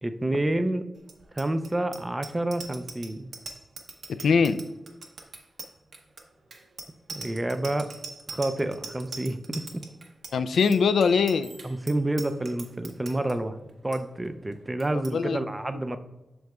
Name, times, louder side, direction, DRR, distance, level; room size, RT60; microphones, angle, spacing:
voice 1, 0.0-0.9 1.4-3.3 7.1-7.9 8.3-9.8 11.6-13.6 13.8-16.0, right 1 dB, 15° right, 10 dB, 0.4 m, -29 dB
Bicycle bell, 1.0-13.3 13.7-14.0 14.2-14.5 14.8-15.1, right 4 dB, 60° right, 0.8 m, -42 dB
voice 2, 4.2-4.6 10.3-11.5 14.9-15.4, left 5 dB, 80° left, 11 dB, 0.3 m, -22 dB
7.7 x 6.4 x 2.3 m, 1.0 s
wide cardioid pair, 160°, 0 cm